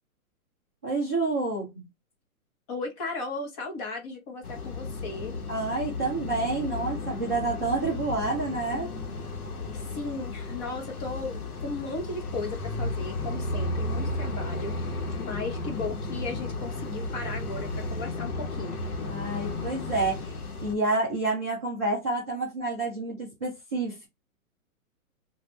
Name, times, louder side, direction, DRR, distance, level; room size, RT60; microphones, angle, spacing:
voice 1, 0.8-1.7 5.5-8.9 19.0-20.3 20.6-24.1, right 3 dB, 10° right, 0.4 m, -29 dB
voice 2, 2.7-5.4 9.7-14.8 15.2-18.8, left 3 dB, 25° left, 0.9 m, -36 dB
sound 1, 4.4-20.7, left 2 dB, 80° left, 1.1 m, -34 dB
3.4 x 2.4 x 3.1 m
hypercardioid pair, 150°, 43 cm